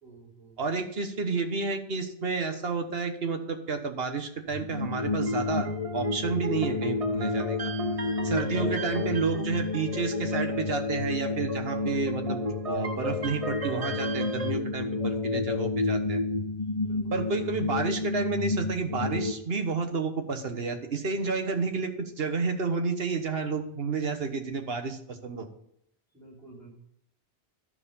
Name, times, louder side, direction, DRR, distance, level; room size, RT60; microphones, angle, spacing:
voice 1, 0.0-0.8 8.5-8.9 11.8-12.1 15.0-15.3 16.8-17.5 26.1-26.7, right 4 dB, ahead, -2 dB, 3.4 m, -47 dB
voice 2, 0.6-5.7 5.9-7.7 8.2-16.2 17.1-25.5, right 4 dB, 75° right, 6 dB, 1.5 m, -30 dB
sound 1, 4.5-19.3, left 3 dB, 35° left, 0.8 m, -30 dB
sound 2, 5.0-14.5, right 3 dB, 40° right, 0.8 m, -38 dB
12.5 x 4.8 x 5.5 m, 0.74 s
omnidirectional pair, 1.0 m